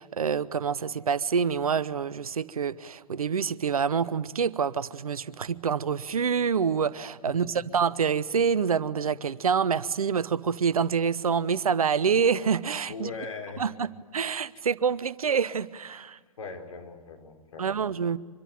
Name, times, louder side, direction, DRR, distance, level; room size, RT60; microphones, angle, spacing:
voice 1, 0.0-13.1 13.6-16.2 17.6-18.2, right 6 dB, 70° right, 17 dB, 1.0 m, -27 dB
voice 2, 12.9-13.7 16.4-17.8, left 4 dB, 60° left, 3 dB, 4.5 m, -39 dB
25.5 x 22.5 x 9.3 m, 1.5 s
figure-of-eight pair, 115°, 19 cm